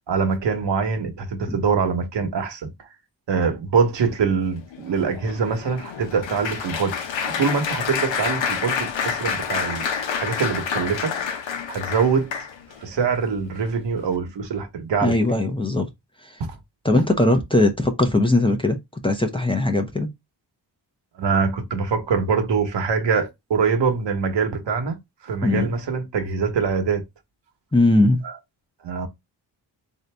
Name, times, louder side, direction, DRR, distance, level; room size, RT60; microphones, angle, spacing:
voice 1, 0.1-2.7 3.3-9.8 10.2-11.1 11.7-12.3 12.8-15.2 21.2-25.0 25.2-27.0 28.2-28.3 28.8-29.1, right 5 dB, 75° right, 1.1 m, -24 dB
Applause, 4.5-12.8 13.4-13.7 14.0-14.2, left 6 dB, 90° left, 0.9 m, -28 dB
voice 2, 15.0-15.9 16.2-16.4 16.8-18.8 19.0-20.1 25.4-25.7 27.7-28.2, left 2 dB, 10° left, 0.5 m, -20 dB
3.9 x 2.8 x 3.3 m
wide cardioid pair, 115°, 43 cm